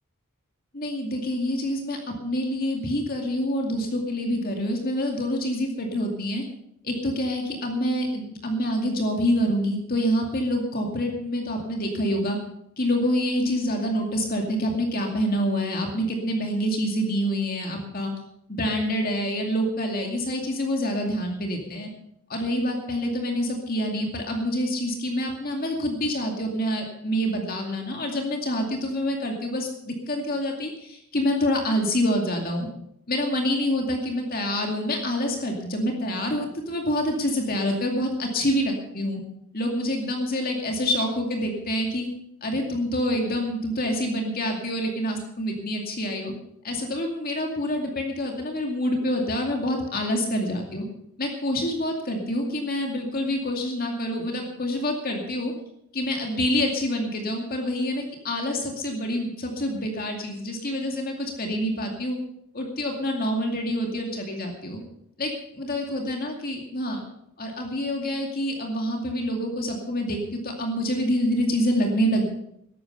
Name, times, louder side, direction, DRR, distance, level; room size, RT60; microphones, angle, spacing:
voice 1, 0.7-6.4 6.8-12.4 12.8-18.1 18.5-21.9 22.3-32.7 33.1-39.2 39.5-42.1 42.4-46.3 46.6-50.8 51.2-55.5 55.9-62.2 62.5-64.8 65.2-67.0 67.4-72.3, equal, 40° left, 2 dB, 2.4 m, -27 dB
13.5 x 11.5 x 6.7 m, 0.74 s
head